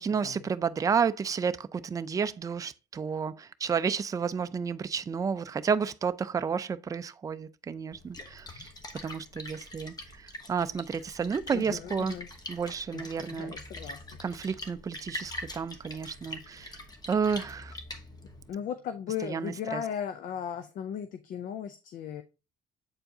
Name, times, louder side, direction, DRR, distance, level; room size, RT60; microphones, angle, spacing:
voice 1, 0.0-8.7 9.0-12.2 12.5-13.5 14.2-16.8 17.1-17.8 19.2-19.8, right 6 dB, 20° right, 0.4 m, -31 dB
Splash splatter, 7.9-18.5, left 1 dB, 25° left, 1.0 m, -44 dB
voice 2, 11.5-12.3 12.9-14.1 18.5-22.2, left 8 dB, 60° left, 0.5 m, -37 dB
7.7 x 4.5 x 2.7 m
cardioid pair, 90°, 15 cm